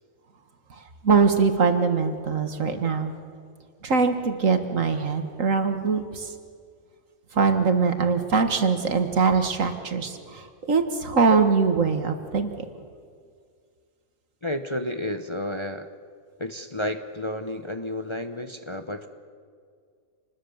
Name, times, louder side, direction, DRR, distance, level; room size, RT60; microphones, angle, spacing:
voice 1, 0.7-3.2 3.8-6.3 7.3-12.7, right 5 dB, 65° right, 7 dB, 2.0 m, -22 dB
voice 2, 14.4-15.9 16.4-19.1, left 1 dB, 25° left, 7 dB, 0.9 m, -31 dB
28.0 x 20.5 x 7.2 m, 2.1 s
omnidirectional pair, 1.4 m